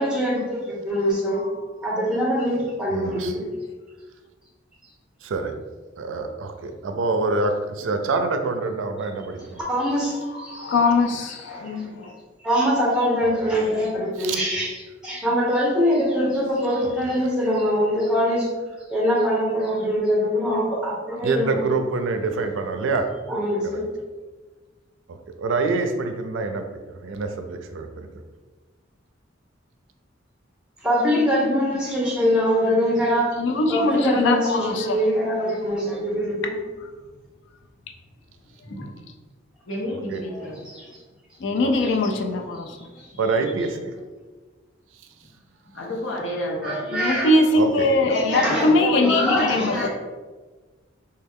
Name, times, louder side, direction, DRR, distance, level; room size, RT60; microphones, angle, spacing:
voice 1, 0.0-1.4 1.8-3.4 9.6-10.7 11.5-11.6 12.4-14.7 15.0-18.5 18.9-21.6 23.3-23.8 30.8-33.3 33.7-36.5 40.3-40.8 43.0-43.1 46.6-47.3 48.1-48.7 49.0-49.9, equal, 5° right, -5 dB, 0.9 m, -23 dB
voice 2, 2.9-3.4 5.2-5.5 6.0-9.6 10.4-10.6 11.5-11.7 13.2-13.6 14.2-14.4 16.8-16.9 21.2-23.1 23.6-23.7 25.1-28.1 40.1-40.2 41.6-41.7 43.2-44.0 47.6-47.9, right 3 dB, 90° right, 6 dB, 0.4 m, -26 dB
voice 3, 10.5-12.1 33.4-35.0 41.4-42.8 46.9-49.9, left 2 dB, 65° left, 4 dB, 0.4 m, -22 dB
voice 4, 39.7-40.6 45.7-46.8 47.9-49.9, left 1 dB, 90° left, -2 dB, 0.8 m, -30 dB
3.1 x 2.3 x 3.5 m, 1.3 s
head